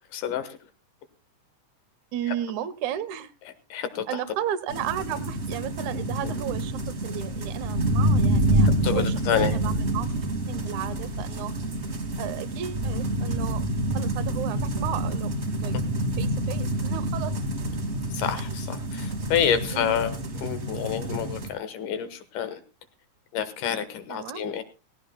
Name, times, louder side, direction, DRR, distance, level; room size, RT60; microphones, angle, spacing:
voice 1, 0.1-0.6 3.7-4.2 8.6-9.5 18.1-20.1 20.4-22.6 23.3-24.6, left 9 dB, 85° left, 10 dB, 2.8 m, -28 dB
voice 2, 2.1-3.3 4.1-10.1 10.5-11.5 12.2-13.6 13.9-15.3 15.6-15.7 16.2-17.4 19.7-20.0 24.1-24.5, right 10 dB, 75° right, 14 dB, 2.2 m, -34 dB
sound 1, 4.7-21.5, right 1 dB, 35° right, 1.1 m, -27 dB
18.0 x 17.0 x 2.2 m, 0.29 s
omnidirectional pair, 3.6 m